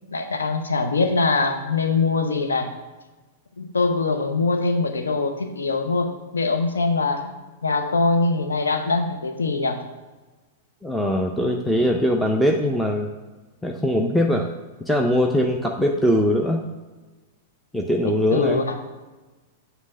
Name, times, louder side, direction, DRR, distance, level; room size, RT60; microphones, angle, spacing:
voice 1, 0.1-2.7 3.6-9.8 18.0-18.7, left 3 dB, 75° left, 6 dB, 0.8 m, -23 dB
voice 2, 10.8-13.1 13.6-14.5 14.9-16.6 17.7-18.6, equal, ahead, 1 dB, 0.6 m, -21 dB
7.4 x 3.4 x 6.2 m, 1.2 s
figure-of-eight pair, 100°, 0 cm